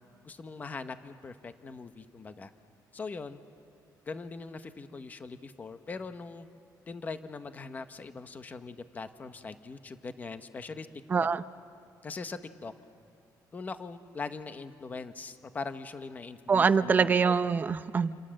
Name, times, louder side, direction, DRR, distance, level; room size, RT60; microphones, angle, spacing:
voice 1, 0.2-2.5 2.9-3.4 4.1-6.5 6.9-10.9 11.2-11.3 12.0-12.7 13.5-17.3, left 4 dB, 25° left, 9 dB, 1.0 m, -41 dB
voice 2, 11.1-11.4 16.5-18.1, right 5 dB, 25° right, 13 dB, 0.6 m, -24 dB
28.5 x 27.5 x 7.6 m, 2.3 s
cardioid pair, 175°, 7 cm